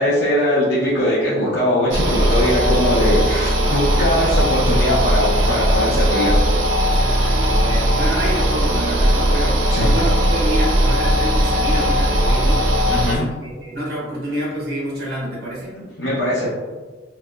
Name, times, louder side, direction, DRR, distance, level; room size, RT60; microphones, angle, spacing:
voice 1, 0.0-6.4 6.8-6.9 9.7-9.9 12.9-13.2 15.8-16.5, equal, 70° left, -8 dB, 0.6 m, -20 dB
sound 1, 1.9-13.1, equal, 90° right, 0.6 m, -18 dB
voice 2, 6.9-12.7 13.0-15.7, right 1 dB, 55° right, -6 dB, 1.2 m, -28 dB
4.5 x 2.0 x 2.3 m, 1.3 s
head